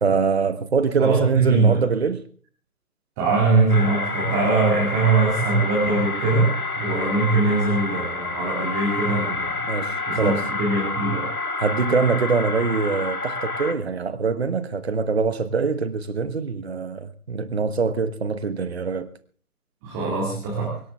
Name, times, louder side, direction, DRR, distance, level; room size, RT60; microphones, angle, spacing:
voice 1, 0.0-2.2 9.6-10.5 11.6-19.1, right 5 dB, 45° right, 1.2 m, -23 dB
voice 2, 1.0-1.8 3.2-9.6 10.1-11.3 19.8-20.8, right 3 dB, 10° right, 2.3 m, -22 dB
sound 1, 3.7-13.7, left 3 dB, 80° left, 2.0 m, -28 dB
24.0 x 12.0 x 3.5 m
figure-of-eight pair, 150°, 44 cm